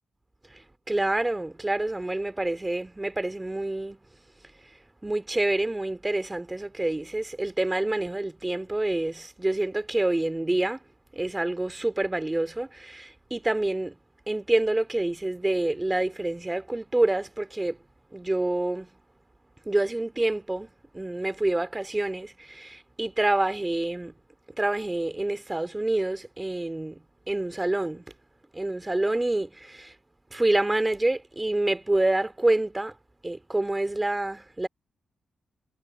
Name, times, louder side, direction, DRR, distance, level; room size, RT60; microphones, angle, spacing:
voice 1, 0.5-4.0 5.0-10.8 11.1-14.0 14.3-17.8 18.1-18.9 19.7-24.1 24.6-28.0 28.5-29.9 30.3-32.9 33.2-34.7, right 2 dB, 15° right, 2.7 m, -27 dB
cardioid pair, 85°, 0 cm